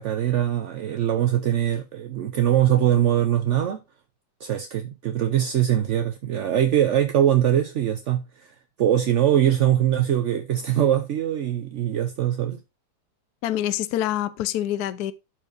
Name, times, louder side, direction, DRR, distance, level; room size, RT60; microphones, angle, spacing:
voice 1, 0.0-3.8 4.4-12.6, right 11 dB, 60° right, 0.8 m, -22 dB
voice 2, 13.4-15.1, left 12 dB, 70° left, 1.0 m, -26 dB
12.5 x 4.6 x 2.6 m
omnidirectional pair, 2.0 m